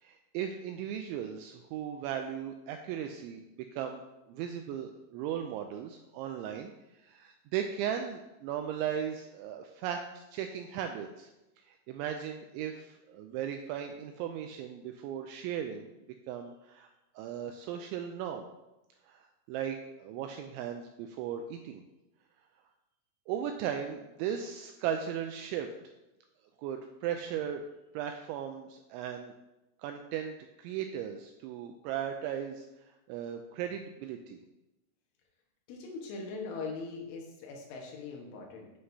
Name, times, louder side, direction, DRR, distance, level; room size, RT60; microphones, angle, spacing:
voice 1, 0.0-6.7 7.0-11.3 11.7-15.9 16.3-16.9 17.2-18.5 19.0-21.8 23.3-25.7 26.6-27.6 27.9-29.3 29.8-34.4, right 9 dB, 85° right, 5 dB, 2.7 m, -37 dB
voice 2, 35.7-38.7, left 4 dB, 75° left, -1 dB, 3.7 m, -41 dB
9.5 x 7.9 x 2.8 m, 0.96 s
omnidirectional pair, 5.8 m